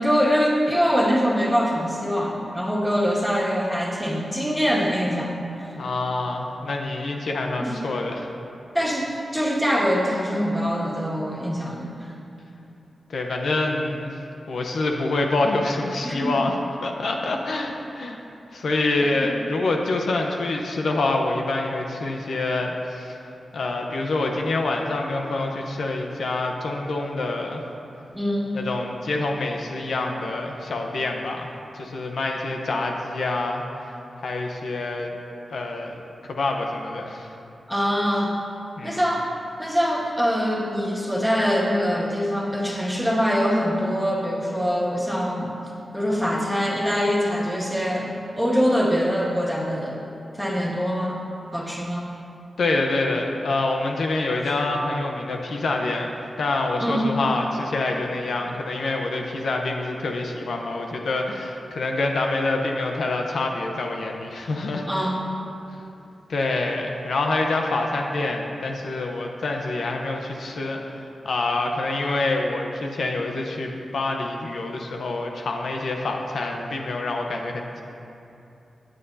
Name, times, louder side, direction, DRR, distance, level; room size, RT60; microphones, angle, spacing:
voice 1, 0.0-5.3 7.6-7.7 8.7-12.1 16.0-16.4 19.0-19.3 28.1-28.6 37.7-38.3 38.8-39.3 39.6-45.5 45.9-48.1 48.4-49.9 50.4-51.2 51.5-52.1 56.8-57.1 64.9-65.2, equal, ahead, -5 dB, 1.9 m, -23 dB
voice 2, 5.8-8.3 13.1-14.1 14.5-18.2 18.5-27.6 28.5-33.6 34.2-35.2 35.5-37.3 38.8-39.0 52.6-64.9 66.3-77.8, left 2 dB, 75° left, 1 dB, 0.9 m, -26 dB
16.5 x 8.9 x 2.8 m, 2.8 s
wide cardioid pair, 85°, 0 cm